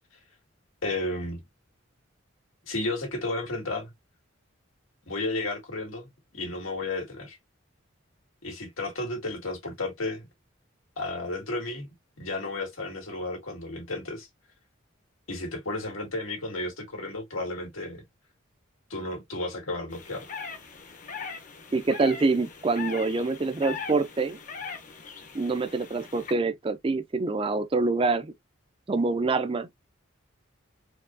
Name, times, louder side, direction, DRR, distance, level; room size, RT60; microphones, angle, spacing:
voice 1, 0.8-1.4 2.7-3.9 5.1-7.4 8.4-10.2 11.0-11.9 12.2-14.3 15.3-18.0 18.9-20.3, left 2 dB, 90° left, 2.0 m, -33 dB
sound 1, 19.9-26.3, left 5 dB, 40° left, 0.7 m, -40 dB
voice 2, 21.7-24.4 25.3-28.3 28.9-29.7, right 3 dB, 25° right, 0.4 m, -26 dB
4.5 x 2.8 x 2.6 m
head